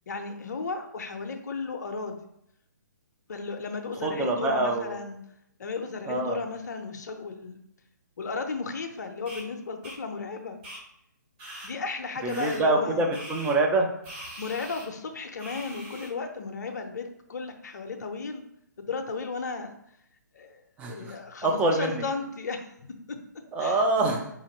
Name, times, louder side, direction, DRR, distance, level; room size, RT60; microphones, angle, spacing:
voice 1, 0.1-2.2 3.3-5.2 5.6-7.6 8.2-10.6 11.6-13.1 14.4-18.4 18.8-19.7 20.3-22.7 23.1-23.2 23.6-23.8, left 4 dB, 60° left, 5 dB, 0.5 m, -34 dB
voice 2, 4.0-5.0 6.1-6.4 12.2-13.9 20.8-21.1 21.4-22.0 23.5-24.3, right 2 dB, 15° right, 2 dB, 0.4 m, -25 dB
sound 1, 9.3-9.4 9.8-10.0 10.6-10.8 11.4-11.7 12.3-12.6 13.1-13.5 14.0-14.9 15.4-16.1, right 1 dB, 35° right, 1.3 m, -42 dB
4.1 x 2.5 x 2.9 m, 0.76 s
figure-of-eight pair, 130°, 10 cm